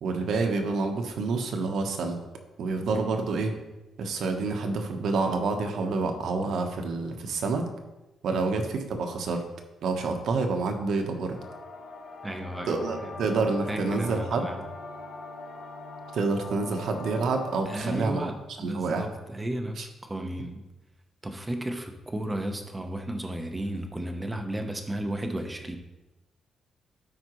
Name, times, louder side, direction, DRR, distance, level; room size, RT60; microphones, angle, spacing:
voice 1, 0.0-2.2 2.6-3.5 4.0-7.7 8.2-9.4 9.8-11.4 12.7-14.5 16.1-18.3 18.6-19.1 19.8-19.9, right 3 dB, 70° right, 4 dB, 1.1 m, -28 dB
sound 1, 11.3-18.0, left 3 dB, 70° left, 2.0 m, -41 dB
voice 2, 12.2-13.1 13.7-14.6 17.7-20.6 21.2-25.8, right 1 dB, 15° right, 5 dB, 0.9 m, -34 dB
12.5 x 4.9 x 3.1 m, 1.0 s
cardioid pair, 120°, 0 cm